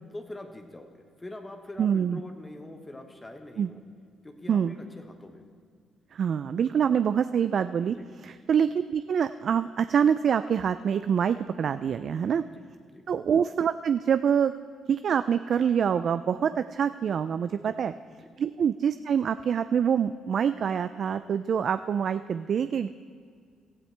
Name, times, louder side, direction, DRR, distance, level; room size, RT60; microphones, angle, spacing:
voice 1, 0.1-3.8 4.2-5.4 7.9-8.1 12.1-12.2 12.5-12.6 12.9-13.1 17.6-17.8 18.2-18.3, left 1 dB, 20° left, 4 dB, 1.1 m, -44 dB
voice 2, 1.8-2.2 3.6-3.7 4.5-4.7 6.1-8.0 8.2-12.4 13.1-14.5 14.9-17.9 18.4-22.9, right 7 dB, 60° right, 12 dB, 0.3 m, -25 dB
17.0 x 13.0 x 3.3 m, 2.1 s
cardioid pair, 85°, 0 cm